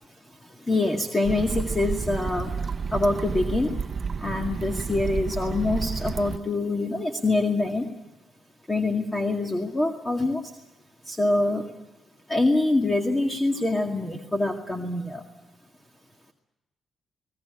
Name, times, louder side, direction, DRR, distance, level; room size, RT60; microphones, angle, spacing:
voice 1, 0.7-2.5 2.9-3.7 4.2-7.9 8.7-10.4 11.1-11.6 12.3-15.2, left 2 dB, 20° left, 3 dB, 2.1 m, -25 dB
sound 1, 1.2-6.4, right 5 dB, 40° right, 1.0 m, -31 dB
21.0 x 19.0 x 9.8 m, 1.0 s
cardioid pair, 90°, 0 cm